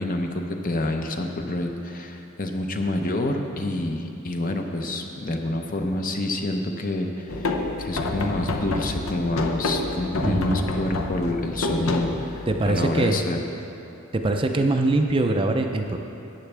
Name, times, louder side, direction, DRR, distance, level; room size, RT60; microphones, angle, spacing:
voice 1, 0.0-13.4, left 1 dB, 40° left, 4 dB, 0.7 m, -28 dB
sound 1, 7.3-12.8, left 2 dB, 75° left, 0.7 m, -28 dB
voice 2, 10.2-10.7 12.5-13.2 14.1-16.0, right 2 dB, 25° right, 4 dB, 0.4 m, -23 dB
14.0 x 9.3 x 3.4 m, 2.9 s
head